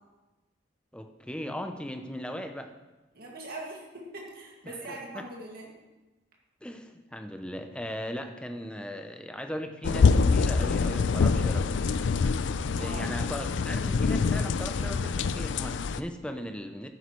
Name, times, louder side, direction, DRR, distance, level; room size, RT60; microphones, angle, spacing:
voice 1, 0.9-2.7 4.6-5.2 6.6-11.7 12.7-16.9, equal, 5° left, 6 dB, 0.5 m, -38 dB
voice 2, 3.1-5.7 12.8-13.1, right 2 dB, 50° right, -2 dB, 2.1 m, -41 dB
sound 1, 9.8-16.0, left 4 dB, 60° left, 0.4 m, -25 dB
11.0 x 9.3 x 3.1 m, 1.1 s
head